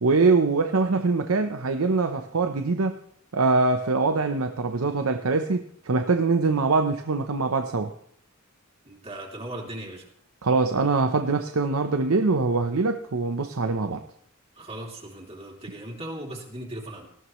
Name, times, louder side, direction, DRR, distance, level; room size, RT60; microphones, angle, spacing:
voice 1, 0.0-3.0 3.3-7.9 10.4-14.0, right 3 dB, 90° right, 7 dB, 0.8 m, -23 dB
voice 2, 8.8-10.1 14.5-17.1, right 1 dB, 30° right, -1 dB, 3.1 m, -38 dB
18.5 x 14.5 x 3.1 m, 0.67 s
head